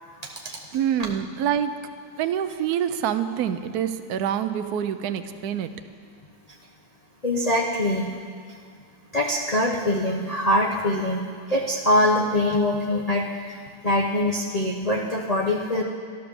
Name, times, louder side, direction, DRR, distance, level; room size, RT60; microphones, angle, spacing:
voice 1, 0.7-1.7 2.2-5.7, right 9 dB, 65° right, 9 dB, 1.0 m, -26 dB
voice 2, 7.2-8.1 9.1-13.6 13.8-15.8, left 1 dB, 80° left, -2 dB, 0.3 m, -23 dB
13.0 x 11.5 x 7.0 m, 2.1 s
omnidirectional pair, 2.2 m